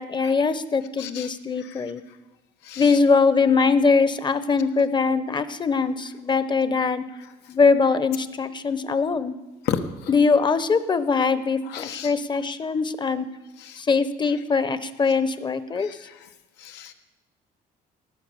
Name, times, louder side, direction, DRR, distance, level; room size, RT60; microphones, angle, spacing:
voice 1, 0.0-2.0 2.8-7.0 7.5-9.4 10.1-13.3 13.8-15.9, left 4 dB, 25° left, 13 dB, 0.8 m, -22 dB
voice 2, 1.0-1.3 1.6-1.9 2.6-3.0 9.6-10.1 11.6-12.1 13.6-13.8 15.7-16.3 16.6-16.9, left 8 dB, 85° left, 7 dB, 1.3 m, -33 dB
17.5 x 7.8 x 6.8 m, 1.1 s
cardioid pair, 110°, 17 cm